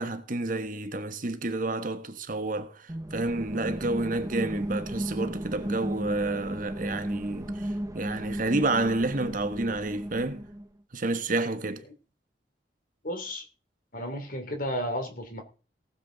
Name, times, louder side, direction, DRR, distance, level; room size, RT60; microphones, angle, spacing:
voice 1, 0.0-10.4 10.9-11.8, right 2 dB, 50° right, 1.2 m, -30 dB
sound 1, 2.9-10.7, right 1 dB, 20° right, 0.7 m, -34 dB
voice 2, 13.0-13.4 13.9-15.4, equal, 50° left, 2.9 m, -33 dB
18.5 x 7.3 x 3.9 m
head